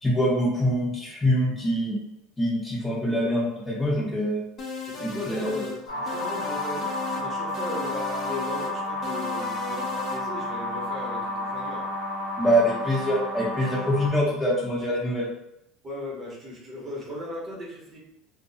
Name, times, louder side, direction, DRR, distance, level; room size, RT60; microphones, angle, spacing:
voice 1, 0.0-2.0 2.4-4.4 5.0-5.6 12.4-15.3, equal, 20° left, -5 dB, 0.9 m, -24 dB
sound 1, 4.6-5.8 6.1-7.3 7.5-8.7 9.0-10.2, left 3 dB, 45° left, 0.5 m, -36 dB
voice 2, 4.9-11.9 15.8-18.0, left 1 dB, 35° right, -4 dB, 0.9 m, -37 dB
sound 2, 5.9-14.1, left 1 dB, 80° left, 0.7 m, -31 dB
2.2 x 2.1 x 2.7 m, 0.79 s
supercardioid pair, 95°, 0 cm